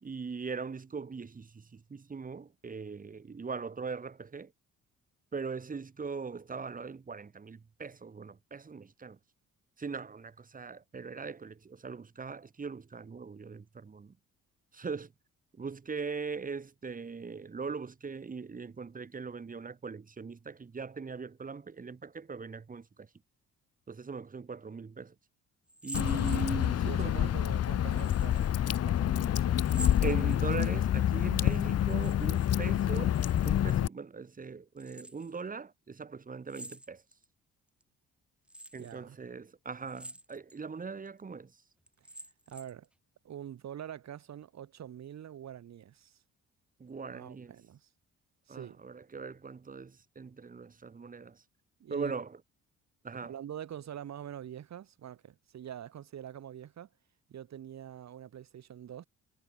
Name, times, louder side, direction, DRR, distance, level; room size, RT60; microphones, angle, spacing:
voice 1, 0.0-4.5 5.3-9.2 9.8-14.2 14.7-15.1 15.5-23.1 23.9-25.1 25.8-27.3 30.0-37.0 38.7-41.6 46.8-47.5 48.5-51.4 51.9-52.4 53.0-53.3, right 5 dB, 25° right, 1.5 m, -40 dB
sound 1, 25.7-26.9 27.9-28.5 29.6-30.8 31.8-32.5 32.8-33.8 34.8-35.3 36.5-37.2 37.8-37.9 38.5-38.9 39.8-40.6 41.1-41.2 41.9-42.8, right 1 dB, 5° right, 1.5 m, -47 dB
Water / Drip, 25.9-33.9, left 11 dB, 55° left, 1.0 m, -28 dB
voice 2, 26.8-29.8 38.8-39.2 42.0-42.1 42.5-42.9 43.2-46.2 47.1-47.9 48.5-48.8 51.8-52.1 53.2-56.9 57.3-59.1, right 10 dB, 60° right, 3.1 m, -45 dB
cardioid pair, 90°, 30 cm